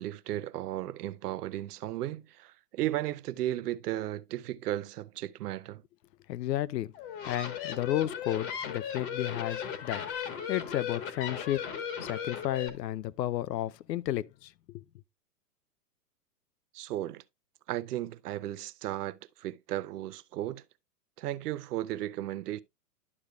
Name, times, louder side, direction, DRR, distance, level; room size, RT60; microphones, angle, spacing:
voice 1, 0.0-5.8 16.7-17.2 17.7-20.6 21.2-22.6, right 14 dB, 70° right, 0.7 m, -35 dB
voice 2, 6.3-6.9 7.3-11.7 12.0-14.8, left 13 dB, 85° left, 0.7 m, -33 dB
sound 1, 6.9-12.7, left 7 dB, 35° left, 1.3 m, -37 dB
11.0 x 6.6 x 2.3 m
hypercardioid pair, 155°, 48 cm